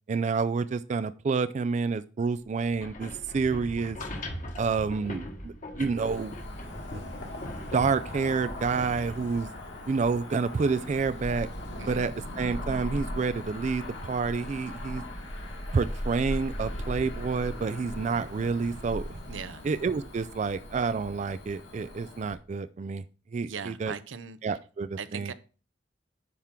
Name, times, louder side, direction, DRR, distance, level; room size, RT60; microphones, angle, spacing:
voice 1, 0.0-4.0 4.6-6.3 6.9-7.0 7.7-9.5 9.9-11.5 11.9-15.0 15.7-19.2 19.6-23.0 23.3-23.9 24.4-25.3, right 4 dB, 40° right, 13 dB, 0.3 m, -29 dB
sound 1, 2.7-10.6, left 1 dB, 45° left, 1.3 m, -41 dB
Cricket / Motor vehicle (road), 6.0-22.3, left 1 dB, 70° left, 2.2 m, -39 dB
voice 2, 19.3-19.6 23.4-24.6 25.0-25.3, right 6 dB, 90° right, 13 dB, 0.7 m, -39 dB
10.0 x 5.9 x 3.7 m, 0.37 s
head